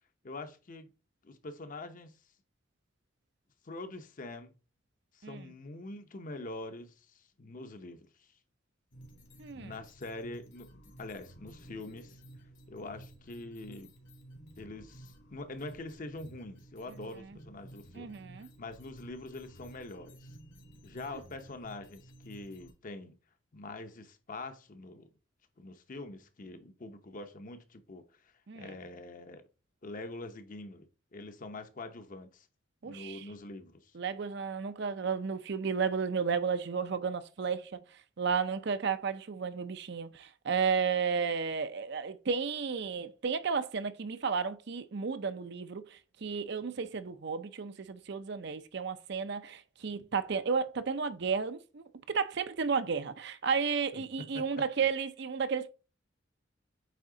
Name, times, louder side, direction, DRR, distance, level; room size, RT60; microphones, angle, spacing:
voice 1, 0.2-0.9 1.2-2.2 3.6-4.5 5.1-8.3 9.5-12.2 12.7-13.9 14.6-20.3 20.8-23.2 23.5-25.1 25.6-29.4 29.8-32.5 32.8-33.9 53.9-54.5, left 2 dB, 45° left, 0.7 m, -44 dB
sound 1, 8.9-22.7, right 1 dB, 75° left, 2.5 m, -53 dB
voice 2, 9.4-9.7 17.9-18.5 28.5-28.7 32.8-33.2 33.9-37.8 38.2-55.7, right 5 dB, 60° right, 0.6 m, -33 dB
8.4 x 3.6 x 3.8 m
head